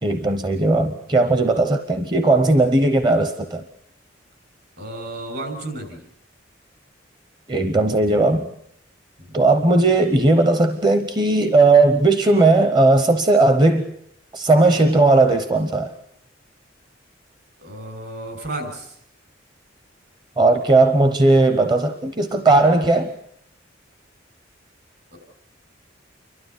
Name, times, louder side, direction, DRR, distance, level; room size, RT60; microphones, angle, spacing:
voice 1, 0.0-3.6 7.5-8.5 9.3-13.9 14.3-15.9 20.4-23.1, right 2 dB, 25° right, 8 dB, 0.9 m, -17 dB
voice 2, 4.8-6.0 9.2-9.4 17.6-19.0 25.1-25.2, right 1 dB, 60° right, 6 dB, 7.1 m, -33 dB
29.0 x 12.5 x 9.6 m, 0.73 s
head